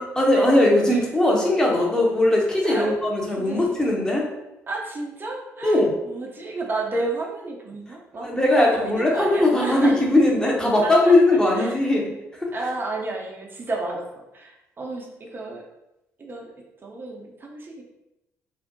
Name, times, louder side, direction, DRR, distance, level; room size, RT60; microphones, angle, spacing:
voice 1, 0.0-4.2 5.6-5.9 8.2-12.1 12.4-12.5, left 1 dB, 10° left, -3 dB, 0.7 m, -19 dB
voice 2, 2.6-2.9 3.4-3.8 4.7-5.8 6.1-10.0 10.8-11.7 12.5-14.0 14.3-15.0 15.3-15.6 16.2-16.5 16.8-17.8, right 2 dB, 30° right, -1 dB, 0.6 m, -31 dB
2.5 x 2.1 x 2.6 m, 0.91 s
figure-of-eight pair, 45°, 7 cm